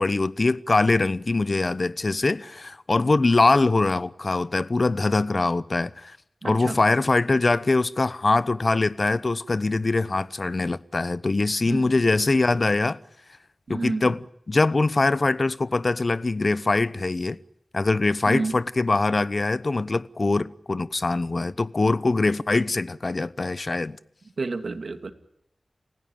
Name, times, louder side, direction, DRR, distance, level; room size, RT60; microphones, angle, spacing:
voice 1, 0.0-6.2 6.4-13.0 13.7-17.4 17.7-24.0, left 3 dB, 50° left, 0.9 m, -23 dB
voice 2, 6.4-6.8 11.7-11.8 13.7-14.0 18.3-18.6 24.4-25.1, right 3 dB, 75° right, 2.5 m, -29 dB
29.5 x 16.5 x 9.1 m
wide cardioid pair, 75°, 0 cm